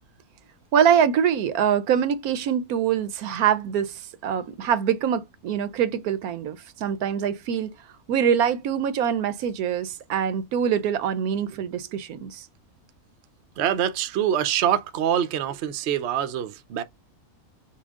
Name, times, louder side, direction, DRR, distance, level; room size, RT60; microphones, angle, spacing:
voice 1, 0.7-7.7 8.1-12.5, right 8 dB, 80° right, 1.2 m, -24 dB
voice 2, 13.6-16.8, right 10 dB, 60° right, 0.8 m, -25 dB
5.7 x 2.4 x 3.6 m
omnidirectional pair, 1.5 m